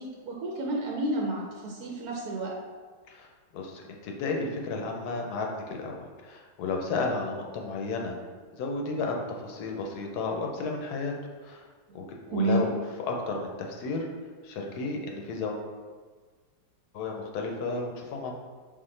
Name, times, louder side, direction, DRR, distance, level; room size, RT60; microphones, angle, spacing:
voice 1, 0.0-2.5 12.3-12.7, right 2 dB, 70° right, -1 dB, 1.0 m, -30 dB
voice 2, 3.5-8.2 8.5-11.1 11.4-11.6 11.9-12.7 13.0-14.1 14.4-15.7 16.9-18.3, left 3 dB, 70° left, 1 dB, 1.1 m, -33 dB
4.1 x 3.6 x 3.2 m, 1.5 s
omnidirectional pair, 1.9 m